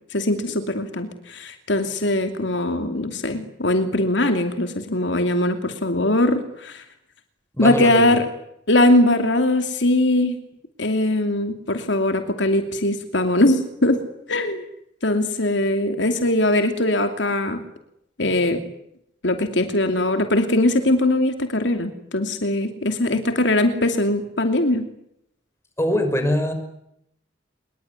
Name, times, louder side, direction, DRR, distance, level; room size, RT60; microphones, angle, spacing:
voice 1, 0.1-6.8 7.6-8.3 8.7-10.4 10.8-14.0 14.3-14.6 15.0-17.6 18.2-18.6 19.2-24.9, left 1 dB, 70° left, 7 dB, 2.7 m, -21 dB
voice 2, 7.5-8.0 25.8-26.5, left 1 dB, 15° left, 7 dB, 6.1 m, -22 dB
25.5 x 22.5 x 9.7 m, 0.77 s
head